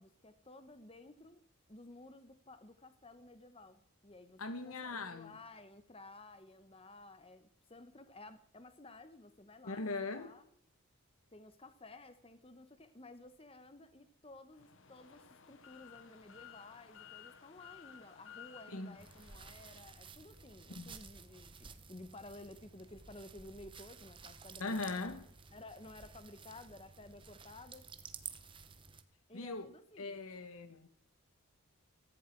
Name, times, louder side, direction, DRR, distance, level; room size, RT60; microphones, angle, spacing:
voice 1, 0.0-1.4 1.7-10.4 11.3-25.0 25.5-27.9 29.3-30.3, left 2 dB, 25° left, 1.0 m, -54 dB
voice 2, 4.4-5.4 9.6-10.3 18.7-19.0 20.7-20.9 24.6-25.2 29.3-29.7 30.0-30.9, left 3 dB, 75° left, 1.5 m, -40 dB
sound 1, 14.5-19.8, left 8 dB, 55° left, 1.0 m, -56 dB
sound 2, 19.0-29.0, right 6 dB, 20° right, 0.8 m, -53 dB
16.5 x 14.5 x 4.7 m
head